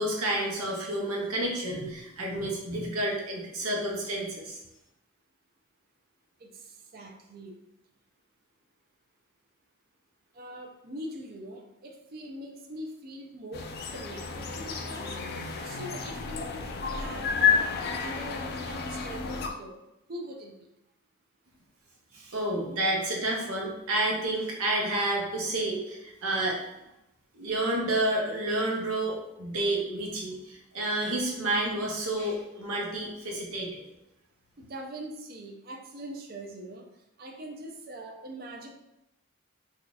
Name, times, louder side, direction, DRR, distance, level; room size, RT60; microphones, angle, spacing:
voice 1, 0.0-4.6 22.1-26.6 27.3-33.8, right 1 dB, 90° right, -2 dB, 0.9 m, -30 dB
voice 2, 6.4-7.6 10.3-13.7 13.9-15.2 15.6-19.7 20.1-20.7 34.6-36.8 37.2-38.7, right 1 dB, 45° right, 1 dB, 0.5 m, -42 dB
sound 1, 13.5-19.5, left 6 dB, 50° left, 0.3 m, -30 dB
2.7 x 2.4 x 3.9 m, 0.88 s
head